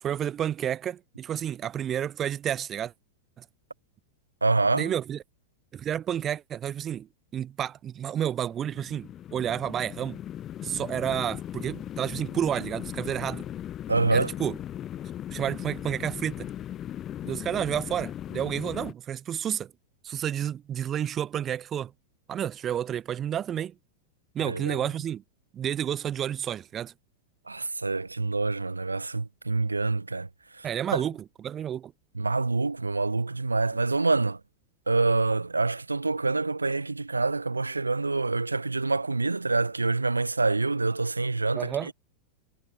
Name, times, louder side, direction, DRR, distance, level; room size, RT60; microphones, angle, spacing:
voice 1, 0.0-2.9 3.4-3.5 4.7-5.2 5.7-10.2 10.6-13.5 14.1-14.6 15.3-16.5 17.2-19.7 20.0-21.9 22.3-23.7 24.3-25.2 25.5-26.9 30.6-31.9 41.5-41.9, right 10 dB, 25° right, 3.0 m, -30 dB
voice 2, 4.4-4.9 13.9-14.3 24.5-24.8 27.5-30.3 30.6-30.7 32.1-34.4 34.9-41.7, right 3 dB, 80° right, 0.6 m, -26 dB
sound 1, 8.4-18.9, left 11 dB, 30° left, 7.0 m, -38 dB
figure-of-eight pair, 90°, 0 cm